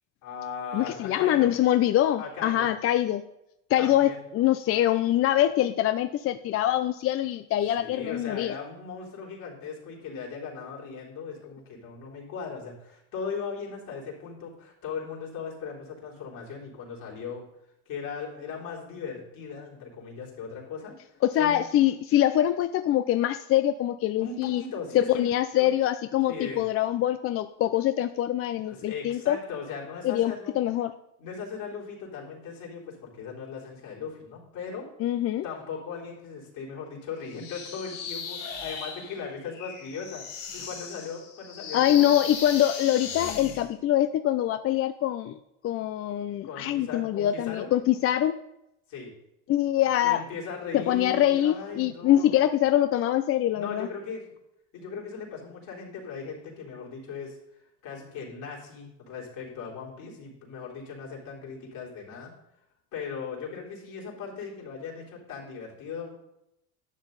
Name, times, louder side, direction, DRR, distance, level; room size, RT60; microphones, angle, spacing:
voice 1, 0.2-1.5 2.2-2.7 3.8-4.2 7.7-17.4 17.9-20.9 21.4-21.6 24.2-25.3 25.5-25.7 26.3-26.7 28.6-30.6 31.2-34.9 35.4-42.1 46.4-47.7 48.9-49.1 50.0-52.3 53.5-54.2 54.7-57.4 57.8-62.3 62.9-66.1, left 5 dB, 55° left, -3 dB, 3.8 m, -38 dB
voice 2, 0.7-3.2 3.7-8.5 21.2-24.6 24.9-29.4 30.0-30.9 35.0-35.4 41.7-45.3 45.6-48.3 49.5-50.2 50.7-53.9, left 12 dB, 40° left, 10 dB, 0.4 m, -24 dB
sound 1, 37.3-43.7, left 6 dB, 90° left, 4.1 m, -37 dB
11.5 x 7.0 x 4.0 m, 0.83 s
supercardioid pair, 100°, 38 cm